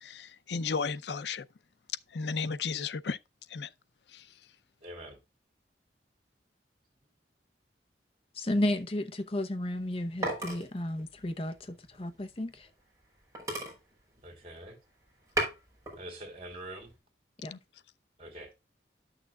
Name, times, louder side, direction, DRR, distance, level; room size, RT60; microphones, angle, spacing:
voice 1, 0.0-1.4 2.1-3.2 3.5-3.7 4.1-4.2 17.5-17.6, left 5 dB, 75° left, 0.6 m, -34 dB
voice 2, 4.8-5.2 14.2-14.8 16.0-16.9 18.2-18.5, right 1 dB, 35° right, 3.6 m, -44 dB
voice 3, 8.4-12.5 17.4-17.5, left 1 dB, 30° left, 0.7 m, -33 dB
sound 1, 9.6-12.7 13.1-13.2 13.3-14.7 15.1-16.0 16.4-16.9, right 1 dB, 20° right, 3.7 m, -37 dB
11.5 x 6.5 x 2.3 m
head